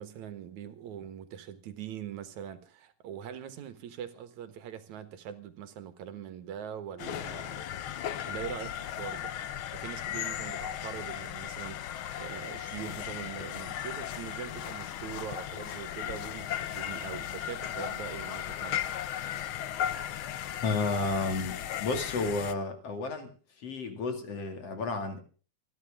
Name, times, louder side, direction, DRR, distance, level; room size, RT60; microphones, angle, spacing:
voice 1, 0.0-7.7 8.3-9.4 9.7-18.8, right 9 dB, 70° right, 2.7 m, -42 dB
sound 1, 7.0-22.5, left 10 dB, 85° left, 1.1 m, -36 dB
voice 2, 20.6-25.2, left 3 dB, 55° left, 3.2 m, -32 dB
28.0 x 10.5 x 3.6 m
omnidirectional pair, 3.4 m